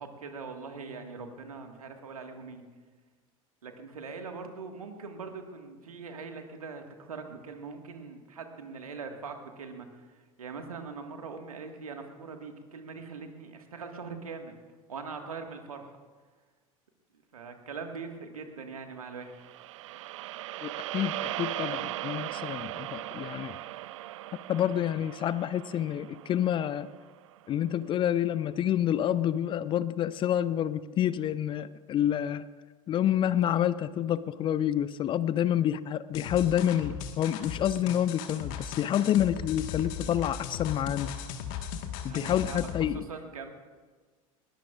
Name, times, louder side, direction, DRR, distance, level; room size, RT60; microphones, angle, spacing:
voice 1, 0.0-2.6 3.6-14.6 14.9-15.9 17.3-19.3 42.1-42.6 42.9-43.5, right 4 dB, 75° right, 5 dB, 1.7 m, -42 dB
sound 1, 19.3-27.6, right 15 dB, 60° right, 0.4 m, -38 dB
voice 2, 20.6-23.6 24.5-26.9 27.5-32.4 32.9-41.1 42.0-43.0, left 10 dB, 25° left, 17 dB, 0.5 m, -28 dB
sound 2, 36.1-42.9, left 8 dB, 50° left, 1.5 m, -37 dB
20.5 x 20.0 x 2.4 m, 1.4 s
figure-of-eight pair, 80°, 18 cm